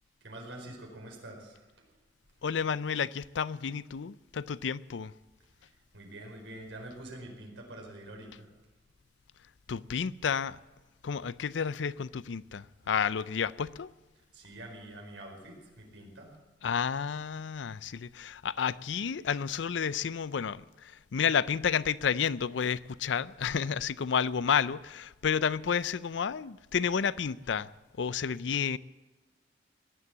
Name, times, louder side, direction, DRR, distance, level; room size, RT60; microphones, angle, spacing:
voice 1, 0.2-1.6 5.6-8.5 12.8-12.9 14.3-16.3, right 1 dB, 90° right, 4.8 m, -46 dB
voice 2, 2.4-5.1 9.7-10.6 11.0-13.9 16.6-27.7 28.0-28.8, left 7 dB, 75° left, 0.5 m, -31 dB
18.0 x 11.0 x 7.3 m
head